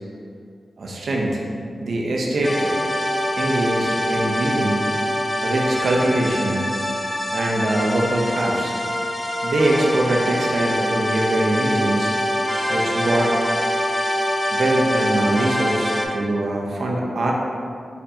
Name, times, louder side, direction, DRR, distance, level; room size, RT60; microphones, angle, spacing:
voice 1, 0.8-1.4 1.8-2.7 3.4-4.9 5.4-6.7 7.3-8.7 9.4-12.1 12.7-13.3 14.5-17.3, right 1 dB, 75° right, -2 dB, 0.6 m, -22 dB
sound 1, 2.4-16.1, equal, 25° left, 0.6 m, -24 dB
4.4 x 4.3 x 2.8 m, 2.3 s
cardioid pair, 45°, 0 cm